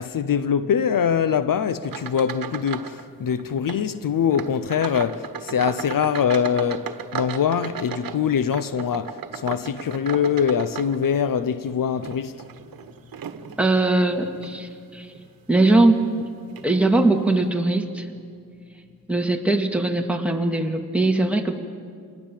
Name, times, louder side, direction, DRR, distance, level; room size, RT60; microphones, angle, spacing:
voice 1, 0.0-12.4, left 7 dB, 70° left, 0.8 m, -23 dB
sound 1, 1.8-3.0 3.3-3.8 4.3-11.4 11.9-13.7 14.3-14.6 15.1-15.3 16.1-16.3 16.6-16.7, right 8 dB, 80° right, 1.3 m, -35 dB
voice 2, 13.6-15.1 15.5-16.1 16.6-18.1 19.1-21.5, right 2 dB, 5° right, 2.1 m, -20 dB
27.5 x 20.0 x 7.5 m
cardioid pair, 95°, 34 cm